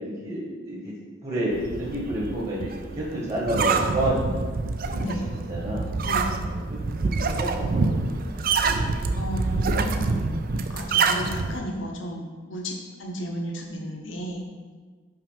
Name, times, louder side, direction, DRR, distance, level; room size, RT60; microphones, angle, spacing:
voice 1, 0.0-0.8 1.2-2.7 3.0-4.5 4.8-5.2 5.5-5.8 6.4-8.8 9.7-9.9, right 1 dB, 35° right, -4 dB, 1.4 m, -30 dB
sound 1, 1.5-11.6, right 4 dB, 50° right, 0.4 m, -26 dB
voice 2, 6.0-6.4 9.1-10.3 10.7-14.4, equal, 80° left, 1 dB, 1.0 m, -33 dB
5.8 x 4.7 x 5.2 m, 1.5 s
head